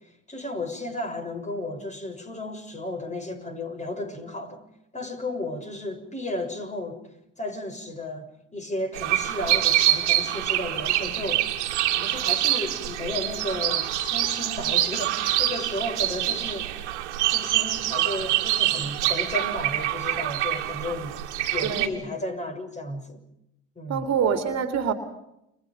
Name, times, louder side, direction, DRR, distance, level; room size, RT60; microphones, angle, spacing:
voice 1, 0.0-4.6 4.9-7.0 7.4-11.5 12.0-16.7 17.2-21.2 21.5-23.2 23.7-24.1, left 1 dB, 20° left, 6 dB, 6.6 m, -33 dB
sound 1, 8.9-21.9, right 14 dB, 85° right, 2.4 m, -25 dB
voice 2, 21.7-22.0 23.9-24.9, right 7 dB, 50° right, 8 dB, 2.8 m, -25 dB
30.0 x 25.5 x 5.3 m, 0.83 s
hypercardioid pair, 65°, 34 cm